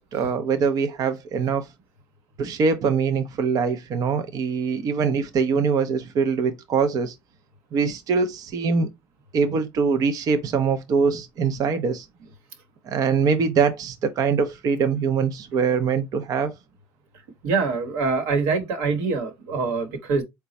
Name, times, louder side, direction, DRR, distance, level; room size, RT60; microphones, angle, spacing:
voice 1, 0.0-1.7 2.4-7.2 7.7-8.9 9.3-12.1 12.9-16.5, right 5 dB, 50° right, 0.6 m, -23 dB
voice 2, 17.4-20.2, right 4 dB, 75° right, 1.1 m, -24 dB
4.0 x 2.2 x 4.0 m
supercardioid pair, 85°, 8 cm